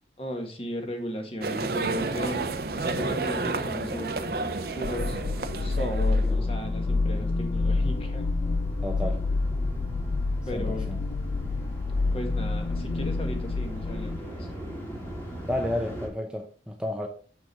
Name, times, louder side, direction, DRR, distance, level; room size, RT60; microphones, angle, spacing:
voice 1, 0.2-2.4 2.8-4.2 4.7-5.2 5.6-8.2 10.5-10.9 12.1-14.6, equal, 30° left, 1.6 m, -36 dB
sound 1, 1.4-6.3, right 3 dB, 55° right, 0.7 m, -31 dB
sound 2, 1.7-16.1, equal, 10° left, 2.1 m, -40 dB
sound 3, 4.8-14.2, left 3 dB, 50° left, 0.4 m, -28 dB
voice 2, 8.8-9.3 10.5-11.0 15.4-17.1, left 1 dB, 5° right, 0.6 m, -31 dB
6.9 x 6.2 x 4.4 m
head